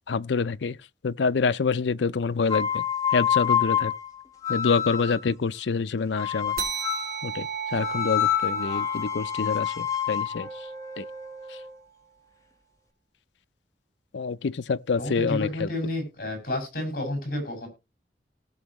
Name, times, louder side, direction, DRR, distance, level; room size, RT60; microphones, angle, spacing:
voice 1, 0.1-0.8 1.0-2.8 3.1-3.9 4.5-6.6 7.2-10.5 11.0-11.1 14.1-15.5, left 5 dB, 85° left, 0.5 m, -26 dB
sound 1, 2.4-5.3 6.2-7.2 7.8-11.8, left 9 dB, 20° left, 1.3 m, -28 dB
sound 2, 6.6-11.5, right 8 dB, 60° right, 2.2 m, -36 dB
voice 2, 14.9-17.7, left 1 dB, 55° left, 6.2 m, -31 dB
18.0 x 6.2 x 3.0 m
head